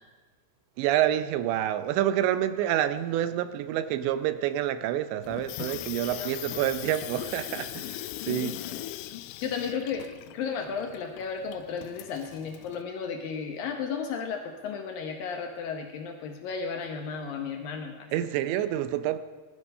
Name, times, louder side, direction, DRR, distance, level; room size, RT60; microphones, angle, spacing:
voice 1, 0.8-8.6 18.1-19.2, right 12 dB, 80° right, 3.0 m, -28 dB
Water tap faucet / Sink (filling or washing), 5.2-12.8, left 14 dB, 90° left, 3.0 m, -39 dB
voice 2, 8.2-8.5 9.4-10.1 10.3-18.3, left 6 dB, 75° left, 2.2 m, -34 dB
20.0 x 13.0 x 5.5 m
omnidirectional pair, 5.2 m